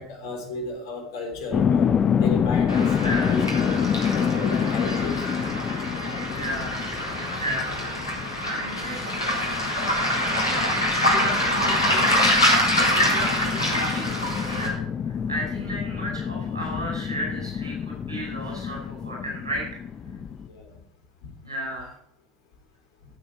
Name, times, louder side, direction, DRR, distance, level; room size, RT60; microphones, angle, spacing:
voice 1, 0.0-1.9 2.2-3.8 4.1-5.6 15.5-15.6 20.5-20.7 21.2-21.3, left 3 dB, 60° left, 3 dB, 3.4 m, -34 dB
sound 1, 1.5-20.5, left 7 dB, 30° left, 0.7 m, -28 dB
Waves surf, 2.7-14.7, equal, 80° left, 3.7 m, -25 dB
voice 2, 3.0-3.4 6.3-6.9 7.2-9.1 10.4-10.6 11.0-19.7 21.4-21.9, equal, 80° right, -3 dB, 5.7 m, -34 dB
15.0 x 7.9 x 4.7 m, 0.70 s
figure-of-eight pair, 75°, 2 cm